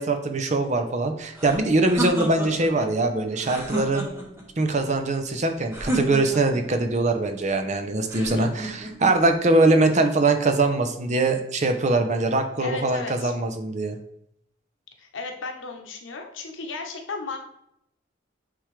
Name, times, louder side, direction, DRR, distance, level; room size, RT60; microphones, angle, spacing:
voice 1, 0.0-4.1 4.6-14.0, right 2 dB, 40° right, 6 dB, 0.7 m, -22 dB
sound 1, 1.3-2.7 3.4-4.4 5.7-6.6 8.1-8.9, right 1 dB, 15° right, 1.1 m, -30 dB
voice 2, 2.5-2.9 8.2-8.5 12.6-13.3 15.0-17.4, left 4 dB, 90° left, 3 dB, 1.0 m, -35 dB
8.9 x 3.5 x 3.3 m, 0.76 s
head